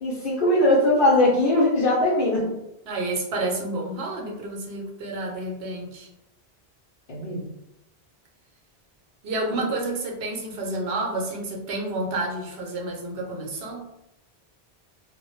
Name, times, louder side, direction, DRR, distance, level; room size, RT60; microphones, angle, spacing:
voice 1, 0.0-2.4 7.1-7.5 9.5-9.6, left 1 dB, 60° left, -5 dB, 0.7 m, -20 dB
voice 2, 2.9-6.1 9.2-13.8, right 2 dB, 75° right, 0 dB, 0.9 m, -30 dB
2.1 x 2.0 x 2.9 m, 0.88 s
omnidirectional pair, 1.1 m